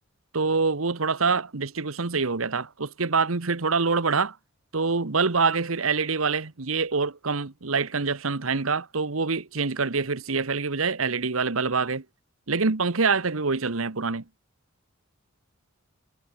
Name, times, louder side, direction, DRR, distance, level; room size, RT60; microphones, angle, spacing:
voice 1, 0.3-4.4 4.7-12.0 12.5-14.2, right 4 dB, 80° right, 1.2 m, -25 dB
head